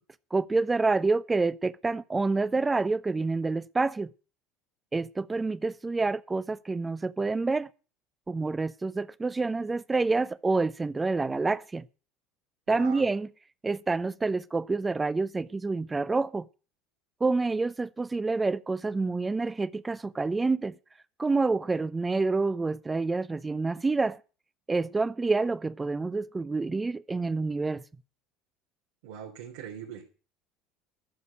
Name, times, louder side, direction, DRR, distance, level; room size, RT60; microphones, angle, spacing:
voice 1, 0.3-4.1 4.9-7.7 8.3-11.8 12.7-13.3 13.6-16.5 17.2-20.7 21.2-24.2 24.7-27.8, right 3 dB, 20° right, 0.8 m, -28 dB
voice 2, 12.7-13.1 29.0-30.1, right 8 dB, 75° right, 3.4 m, -41 dB
12.5 x 7.0 x 9.9 m
hypercardioid pair, 80°, 0 cm